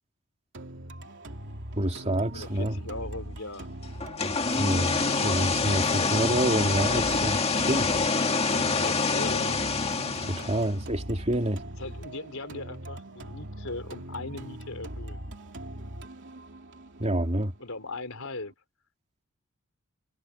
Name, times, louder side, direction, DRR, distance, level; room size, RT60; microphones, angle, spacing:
sound 1, 0.5-18.5, right 1 dB, 60° right, 2.8 m, -41 dB
voice 1, 1.8-2.8 4.6-7.9 10.2-11.6 17.0-17.5, right 1 dB, 30° right, 3.1 m, -28 dB
voice 2, 2.3-3.7 8.3-9.6 11.8-15.2 17.6-18.5, left 2 dB, 75° left, 4.5 m, -39 dB
sound 2, 4.0-10.8, left 4 dB, 30° left, 1.9 m, -26 dB
head